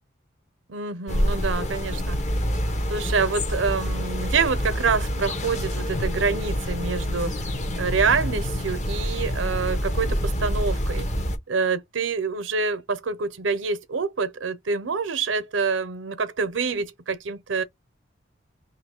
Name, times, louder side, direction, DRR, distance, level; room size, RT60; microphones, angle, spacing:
voice 1, 0.7-2.2 2.9-7.3 7.8-11.1 11.5-17.6, right 5 dB, 85° right, 0.7 m, -26 dB
sound 1, 1.1-11.4, equal, 35° left, 0.7 m, -27 dB
2.9 x 2.7 x 4.4 m
head